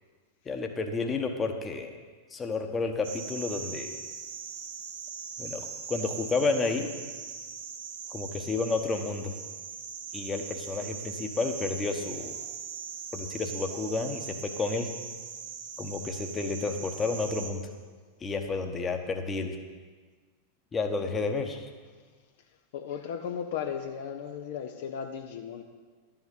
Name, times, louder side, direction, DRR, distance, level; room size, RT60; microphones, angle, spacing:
voice 1, 0.4-2.0 2.3-4.0 5.4-6.9 8.1-9.3 10.1-12.4 13.1-14.9 15.8-17.6 18.2-19.6 20.7-21.7, left 3 dB, 20° left, 5 dB, 1.1 m, -31 dB
sound 1, 3.0-17.5, right 6 dB, 60° right, 1.1 m, -40 dB
voice 2, 22.7-25.6, left 8 dB, 55° left, 5 dB, 0.7 m, -36 dB
11.5 x 5.9 x 8.0 m, 1.5 s
figure-of-eight pair, 90°, 0 cm